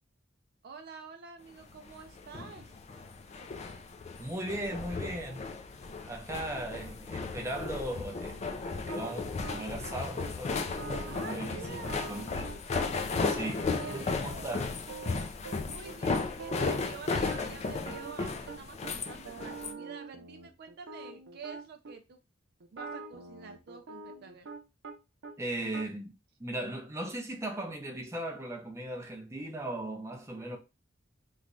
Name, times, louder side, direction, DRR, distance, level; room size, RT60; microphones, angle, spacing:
voice 1, 0.6-2.7 11.1-12.8 13.3-14.6 15.6-22.2 22.7-24.5, right 5 dB, 55° right, 0.4 m, -48 dB
sound 1, 1.8-19.7, left 4 dB, 35° left, 0.4 m, -35 dB
voice 2, 4.2-5.4 6.1-8.4 8.7-10.7 11.0-12.5 13.2-13.7 13.9-14.7 25.4-30.6, right 1 dB, 15° right, 0.7 m, -38 dB
sound 2, 7.8-9.9 10.2-10.3 10.6-12.9 13.2-15.5 15.8-15.9 16.2-16.8 17.1-18.9 19.3-21.9 22.6-24.9 25.2-25.8, right 4 dB, 90° right, 0.7 m, -45 dB
3.2 x 2.2 x 3.7 m
head